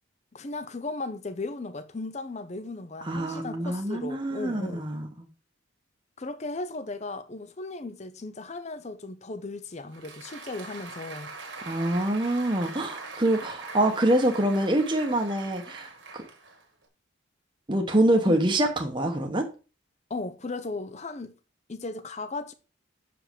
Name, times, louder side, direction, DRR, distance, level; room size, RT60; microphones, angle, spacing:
voice 1, 0.3-4.9 6.2-11.3 18.3-18.4 20.1-21.4 21.7-22.5, left 3 dB, 35° left, 0.6 m, -36 dB
voice 2, 3.0-5.3 11.6-16.2 17.7-19.5, right 1 dB, 25° right, 1.0 m, -25 dB
Applause, 9.7-16.9, right 3 dB, 60° right, 1.6 m, -42 dB
7.0 x 5.2 x 5.1 m
head